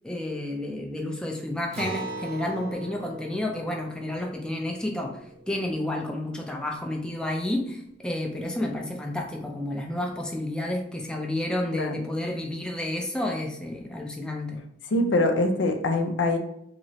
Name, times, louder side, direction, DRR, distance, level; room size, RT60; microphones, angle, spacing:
voice 1, 0.0-5.2 5.5-14.6, left 1 dB, 5° left, 0 dB, 0.4 m, -30 dB
Acoustic guitar, 1.7-6.6, right 2 dB, 60° right, 1.0 m, -40 dB
voice 2, 14.9-16.4, left 2 dB, 80° left, 5 dB, 0.5 m, -23 dB
3.0 x 2.8 x 2.8 m, 0.75 s
head